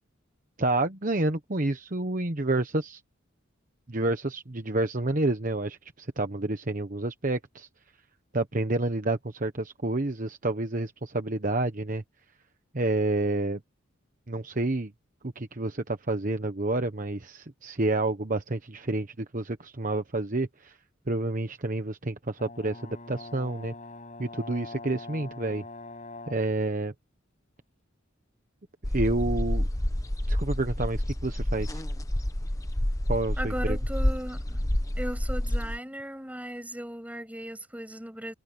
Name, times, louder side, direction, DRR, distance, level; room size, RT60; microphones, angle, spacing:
voice 1, 0.6-3.0 3.9-7.7 8.3-12.0 12.7-13.6 14.3-14.9 15.2-20.8 21.1-23.7 24.2-25.6 26.3-26.9 28.9-29.7 30.3-31.8 33.1-33.8, right 2 dB, 40° right, 1.1 m, -29 dB
Brass instrument, 22.4-26.5, left 2 dB, 35° left, 7.7 m, -43 dB
sound 1, 28.8-35.8, left 1 dB, 15° left, 0.9 m, -28 dB
voice 2, 33.4-34.6 35.0-38.3, equal, 5° right, 6.6 m, -37 dB
head